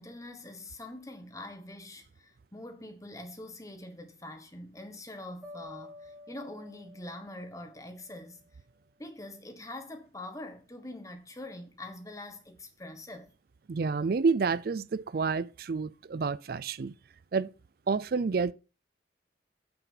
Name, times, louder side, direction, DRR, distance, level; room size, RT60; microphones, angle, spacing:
voice 1, 0.0-8.4 9.0-13.3, left 1 dB, 15° left, 1.2 m, -44 dB
sound 1, 5.4-8.5, left 2 dB, 15° right, 2.9 m, -51 dB
voice 2, 13.7-16.9 17.3-17.5 17.9-18.5, right 4 dB, 55° right, 0.4 m, -29 dB
8.8 x 5.9 x 5.8 m
head